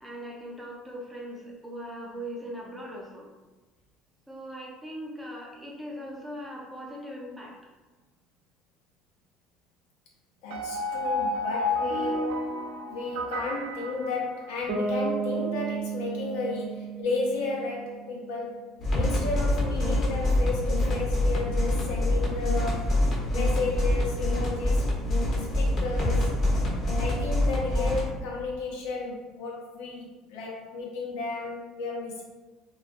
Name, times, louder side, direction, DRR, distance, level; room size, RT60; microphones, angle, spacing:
voice 1, 0.0-3.3 4.3-7.5 19.2-19.3, equal, 5° right, -3 dB, 0.4 m, -40 dB
voice 2, 10.4-12.5 12.8-18.6 19.0-22.9 23.3-24.9 25.3-26.4 27.0-32.2, left 3 dB, 85° left, -2 dB, 0.6 m, -33 dB
sound 1, 10.5-14.8, left 2 dB, 90° right, 0.4 m, -31 dB
Bass guitar, 14.7-18.5, right 4 dB, 55° right, 0.7 m, -33 dB
sound 2, 18.8-28.0, left 1 dB, 35° left, 0.7 m, -25 dB
2.3 x 2.2 x 2.5 m, 1.2 s
cardioid pair, 140°, 0 cm